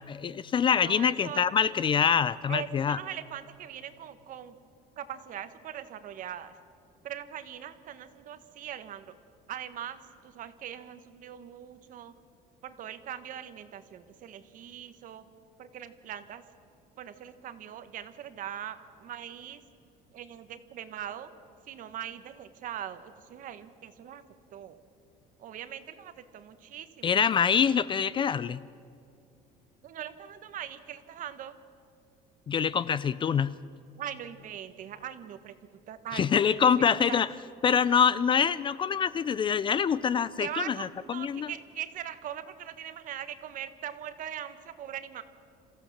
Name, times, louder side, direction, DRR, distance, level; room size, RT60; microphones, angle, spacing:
voice 1, 0.0-3.0 27.0-28.6 32.5-33.6 36.1-37.3 37.6-41.5, left 7 dB, 30° left, 17 dB, 0.4 m, -25 dB
voice 2, 0.7-1.4 2.5-4.6 5.0-6.5 7.0-9.1 9.5-12.1 12.6-15.2 15.6-16.4 17.0-19.6 20.1-21.3 21.6-24.2 24.5-24.8 25.4-27.2 29.8-31.6 34.0-35.5 35.9-36.5 37.1-37.2 40.4-45.2, right 10 dB, 55° right, 11 dB, 1.3 m, -41 dB
27.5 x 15.0 x 7.3 m, 2.5 s
cardioid pair, 135°, 17 cm